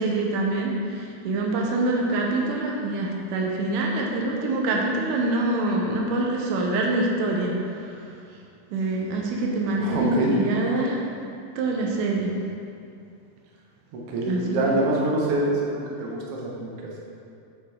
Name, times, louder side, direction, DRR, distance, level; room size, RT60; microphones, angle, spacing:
voice 1, 0.0-8.2 8.7-11.0 11.6-12.3 14.3-14.8, right 2 dB, 75° right, -1 dB, 2.1 m, -25 dB
voice 2, 9.8-10.4 14.1-17.0, right 1 dB, 90° right, -3 dB, 1.2 m, -26 dB
7.9 x 5.6 x 3.6 m, 2.4 s
omnidirectional pair, 4.2 m